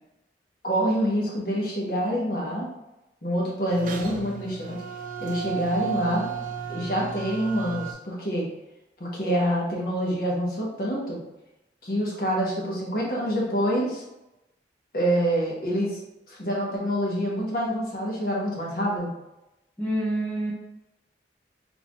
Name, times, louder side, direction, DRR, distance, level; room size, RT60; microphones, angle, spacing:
voice 1, 0.6-2.7 3.2-4.8 5.2-6.3 6.7-8.5 9.0-11.2 11.8-14.0 14.9-16.0 16.3-19.1, equal, 55° left, -4 dB, 1.1 m, -26 dB
sound 1, 3.7-7.9, right 7 dB, 45° right, 0.4 m, -34 dB
voice 2, 19.8-20.5, right 1 dB, 10° left, -7 dB, 0.7 m, -27 dB
4.1 x 3.4 x 2.5 m, 0.93 s
head